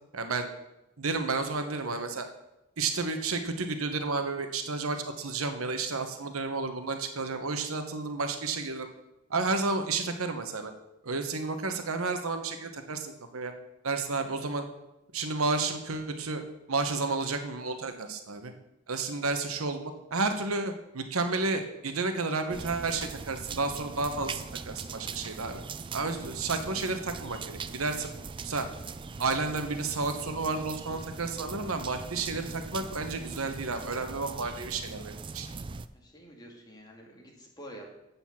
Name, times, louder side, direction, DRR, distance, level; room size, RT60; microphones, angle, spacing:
voice 1, 0.1-0.5 1.0-2.3 2.8-8.9 9.3-10.7 11.0-13.5 13.8-14.6 15.1-16.4 16.7-18.5 18.9-25.6 25.9-28.1 28.4-28.7 29.2-35.5, right 3 dB, 90° right, 7 dB, 1.1 m, -31 dB
sound 1, 22.5-35.9, right 4 dB, 25° right, 0.3 m, -41 dB
voice 2, 35.9-37.9, right 1 dB, 20° left, -1 dB, 2.1 m, -48 dB
7.9 x 7.0 x 7.2 m, 0.92 s
head